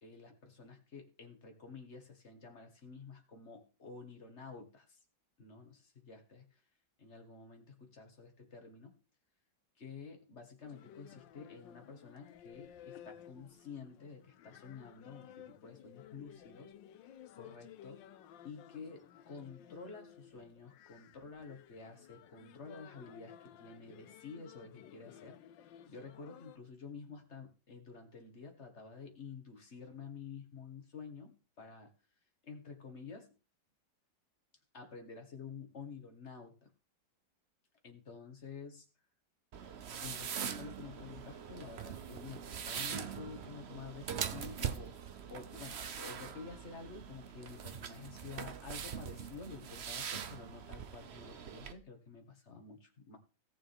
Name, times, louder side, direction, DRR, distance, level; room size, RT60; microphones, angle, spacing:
voice 1, 0.0-5.0 5.4-6.6 7.0-9.0 9.8-16.7 17.3-18.1 18.4-25.4 25.9-31.9 32.4-33.3 34.7-36.7 37.8-38.9 40.0-53.2, left 5 dB, 40° left, 5 dB, 2.2 m, -50 dB
sound 1, 10.6-26.6, left 10 dB, 85° left, 1.4 m, -56 dB
sound 2, 39.5-51.7, right 8 dB, 50° right, 0.8 m, -42 dB
17.5 x 7.0 x 3.6 m, 0.32 s
omnidirectional pair, 2.0 m